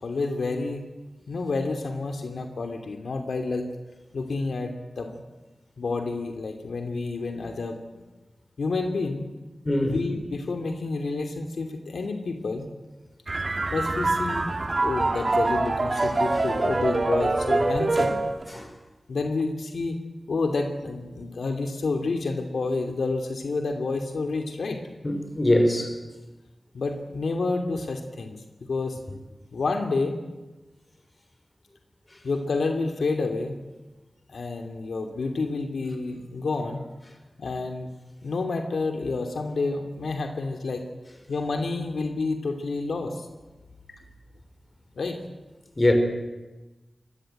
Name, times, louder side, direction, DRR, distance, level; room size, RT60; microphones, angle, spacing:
voice 1, 0.0-0.8 1.3-3.7 4.1-5.2 5.8-7.8 8.6-9.3 9.8-12.7 13.7-14.5 14.8-18.2 19.1-20.0 20.3-24.8 26.7-29.0 29.5-30.2 32.2-33.6 34.3-36.9 37.4-37.9 38.2-40.8 41.3-43.3 45.0-45.2, left 3 dB, 85° left, 5 dB, 2.8 m, -29 dB
voice 2, 9.6-10.0 16.0-16.1 18.5-18.7 25.0-26.0 45.8-45.9, left 1 dB, 25° left, 5 dB, 5.9 m, -22 dB
sound 1, 13.3-18.5, right 2 dB, 40° right, 2.6 m, -25 dB
26.5 x 22.0 x 9.2 m, 1.2 s
wide cardioid pair, 105°, 0 cm